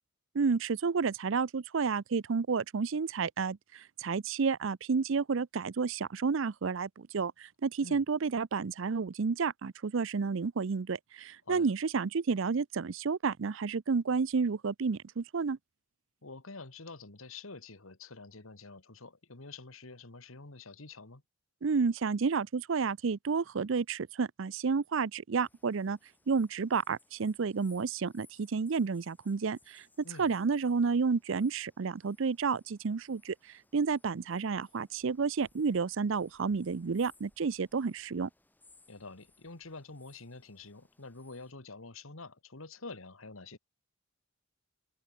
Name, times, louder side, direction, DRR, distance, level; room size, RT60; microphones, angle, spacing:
voice 1, 0.3-15.6 21.6-26.0 26.3-29.8 30.2-33.3 33.7-38.3, right 5 dB, 60° right, 0.5 m, -31 dB
voice 2, 16.2-21.2 30.0-30.3 38.9-43.6, left 3 dB, 75° left, 2.1 m, -47 dB
sound 1, 25.4-41.5, left 2 dB, 10° left, 5.7 m, -66 dB
head